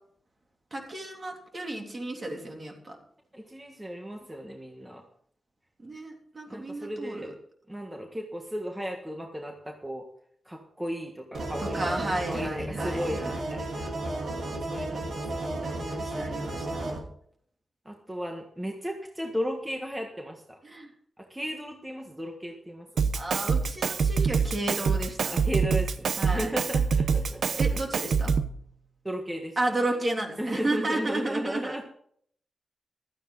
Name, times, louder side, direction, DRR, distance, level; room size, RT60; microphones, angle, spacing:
voice 1, 0.7-3.0 5.8-7.3 11.6-13.4 15.6-17.0 20.6-20.9 23.1-25.4 26.2-26.6 27.6-28.3 29.6-31.8, right 2 dB, 30° right, 1 dB, 3.3 m, -33 dB
voice 2, 3.3-5.0 6.5-7.3 7.7-10.1 10.4-11.9 12.3-14.0 14.4-15.6 17.8-20.6 21.2-23.1 25.3-27.8 29.0-29.6 30.4-31.8, equal, 10° right, 2 dB, 1.6 m, -35 dB
sound 1, 11.3-17.0, right 2 dB, 60° right, 3.9 m, -33 dB
Drum kit, 23.0-28.6, right 5 dB, 75° right, 0.8 m, -26 dB
16.0 x 13.0 x 4.0 m, 0.63 s
wide cardioid pair, 140°, 0 cm